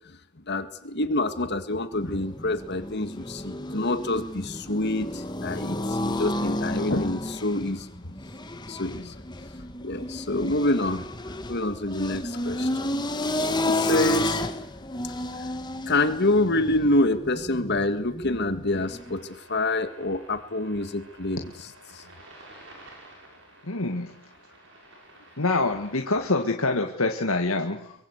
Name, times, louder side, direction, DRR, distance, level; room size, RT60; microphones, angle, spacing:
voice 1, 0.5-8.1 8.7-9.1 9.8-11.1 11.5-12.9 13.7-14.4 15.9-21.5 21.9-22.0, left 2 dB, 50° left, 10 dB, 1.9 m, -27 dB
sound 1, 1.9-19.2, left 1 dB, 20° left, 1.9 m, -31 dB
sound 2, 18.7-26.5, right 1 dB, 60° right, 6.7 m, -51 dB
voice 2, 23.6-24.1 25.4-27.9, left 3 dB, 75° left, 3 dB, 2.1 m, -26 dB
24.5 x 24.0 x 8.3 m, 0.71 s
head